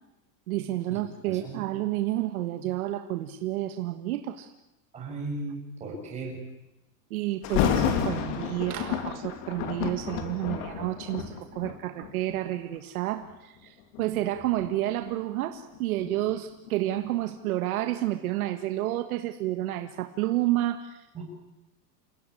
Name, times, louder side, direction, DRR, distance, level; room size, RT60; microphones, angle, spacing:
voice 1, 0.5-4.5 7.1-21.1, right 14 dB, 60° right, 7 dB, 1.6 m, -30 dB
voice 2, 1.3-1.6 4.9-6.4 21.1-21.2, right 3 dB, 15° right, -2 dB, 7.6 m, -36 dB
Thunder, 7.4-12.4 13.1-13.3 13.9-16.8 17.1-17.2, left 8 dB, 40° left, 2.8 m, -31 dB
29.0 x 17.0 x 9.9 m, 0.93 s
supercardioid pair, 175°, 49 cm